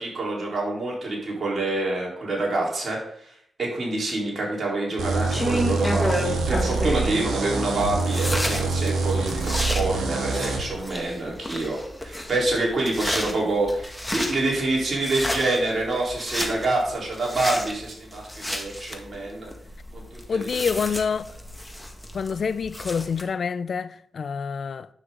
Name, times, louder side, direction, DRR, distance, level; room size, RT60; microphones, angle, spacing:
voice 1, 0.0-3.3 3.6-19.5 19.9-20.4, right 2 dB, 55° right, 4.1 m, -27 dB
sound 1, 5.0-23.2, left 1 dB, 10° left, 1.8 m, -32 dB
sound 2, 5.0-10.6, right 3 dB, 85° right, 1.6 m, -26 dB
voice 2, 20.3-21.2 22.1-24.9, left 6 dB, 65° left, 0.5 m, -27 dB
9.8 x 6.3 x 3.9 m
supercardioid pair, 45°, 0 cm